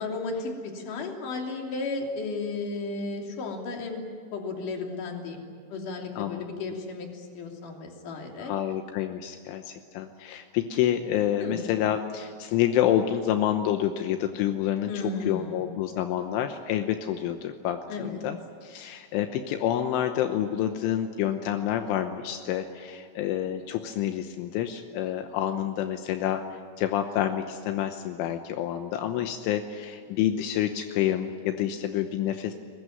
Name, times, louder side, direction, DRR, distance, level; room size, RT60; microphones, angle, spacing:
voice 1, 0.0-4.0 4.3-8.5 11.4-11.6 14.9-15.6 17.9-18.2, left 3 dB, 45° left, 1 dB, 4.1 m, -34 dB
voice 2, 8.4-26.4 26.8-32.5, left 11 dB, 80° left, 6 dB, 3.4 m, -28 dB
23.0 x 21.0 x 9.4 m, 2.1 s
omnidirectional pair, 5.6 m